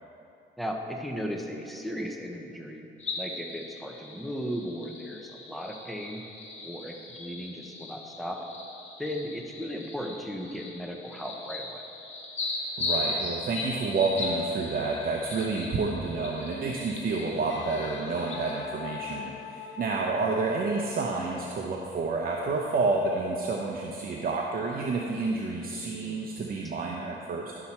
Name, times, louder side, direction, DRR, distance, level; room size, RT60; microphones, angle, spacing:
voice 1, 0.6-2.9 3.2-6.2 6.6-8.4 9.0-11.9 15.3-15.5 25.8-26.3, equal, ahead, 2 dB, 0.9 m, -36 dB
sound 1, 3.0-18.6, left 2 dB, 35° left, 1.5 m, -38 dB
sound 2, 12.5-12.7 13.4-13.5 14.1-14.6 17.2-17.8 21.0-21.7 24.6-24.8, equal, 30° right, 2.0 m, -52 dB
voice 2, 12.5-27.5, right 3 dB, 50° right, -1 dB, 0.8 m, -29 dB
Wind instrument woodwind instrument, 17.5-21.5, left 7 dB, 65° left, 0.8 m, -43 dB
11.5 x 5.6 x 4.3 m, 2.7 s
cardioid pair, 90°, 20 cm